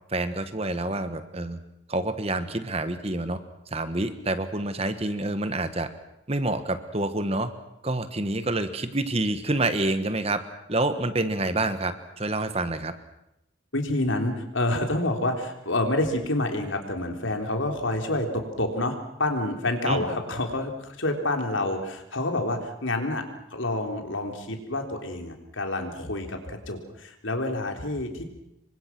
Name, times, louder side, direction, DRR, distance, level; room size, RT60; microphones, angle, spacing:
voice 1, 0.1-1.6 1.9-3.4 3.7-5.9 6.3-7.5 7.8-10.4 10.7-12.9 19.9-20.0, right 2 dB, 30° right, 10 dB, 1.4 m, -27 dB
voice 2, 13.7-23.2 23.5-28.3, left 2 dB, 75° left, 4 dB, 3.7 m, -28 dB
28.0 x 24.0 x 6.1 m, 0.82 s
head